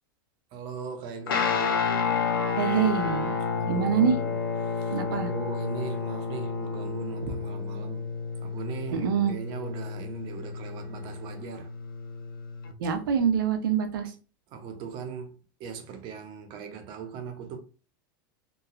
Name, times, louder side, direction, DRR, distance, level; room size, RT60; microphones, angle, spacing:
voice 1, 0.5-2.1 3.6-4.4 4.6-8.1 8.4-11.7 14.5-17.6, right 6 dB, 45° right, 0.7 m, -39 dB
Guitar, 1.3-12.7, left 5 dB, 85° left, 0.5 m, -30 dB
voice 2, 2.6-3.4 3.7-4.2 4.9-5.3 8.9-9.3 12.8-14.1, right 7 dB, 80° right, 0.7 m, -25 dB
3.0 x 2.3 x 2.4 m
supercardioid pair, 125°, 11 cm